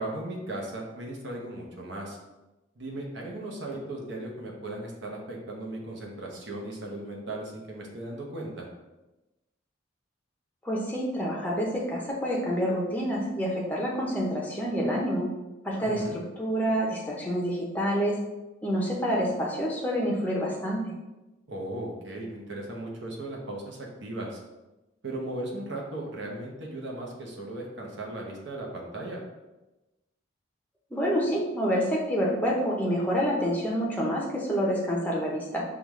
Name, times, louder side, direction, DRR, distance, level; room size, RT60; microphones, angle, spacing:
voice 1, 0.0-2.2 2.8-8.7 15.8-16.2 21.5-24.4 25.0-29.2, right 1 dB, 60° right, -1 dB, 0.8 m, -37 dB
voice 2, 10.6-15.3 15.6-18.2 18.6-20.8 30.9-35.6, equal, 10° left, -3 dB, 0.6 m, -27 dB
5.1 x 2.4 x 3.1 m, 1.0 s
head